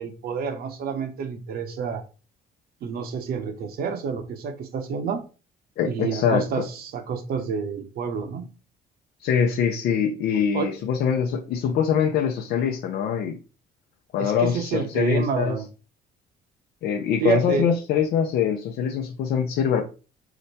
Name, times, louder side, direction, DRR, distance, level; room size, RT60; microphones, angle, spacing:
voice 1, 0.0-2.0 2.8-5.2 5.8-8.5 10.5-10.7 14.2-15.6 17.2-17.7, right 6 dB, 65° right, 7 dB, 0.9 m, -28 dB
voice 2, 5.8-6.4 9.2-13.4 14.1-15.5 16.8-19.8, left 7 dB, 70° left, 1 dB, 0.7 m, -23 dB
4.9 x 2.2 x 4.1 m, 0.34 s
cardioid pair, 110°, 17 cm